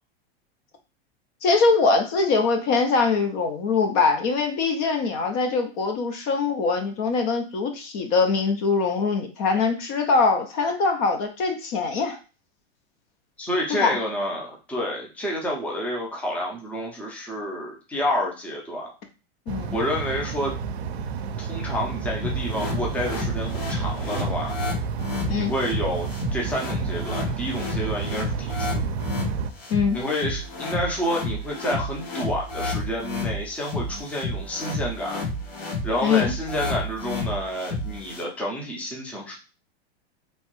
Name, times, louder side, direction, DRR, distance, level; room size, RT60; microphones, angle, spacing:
voice 1, 1.4-12.2 13.7-14.0 19.5-19.8 25.3-25.5 29.7-30.0 36.0-36.3, left 4 dB, 45° left, 5 dB, 0.6 m, -22 dB
voice 2, 13.4-18.9 19.7-20.5 21.4-24.6 25.3-28.9 29.9-35.2 35.8-39.4, equal, 5° left, -2 dB, 0.5 m, -29 dB
sound 1, 19.5-29.5, right 5 dB, 85° right, 0.5 m, -31 dB
sound 2, 22.2-38.2, left 2 dB, 80° left, 1.3 m, -31 dB
3.0 x 2.2 x 3.0 m, 0.33 s
hypercardioid pair, 125°, 31 cm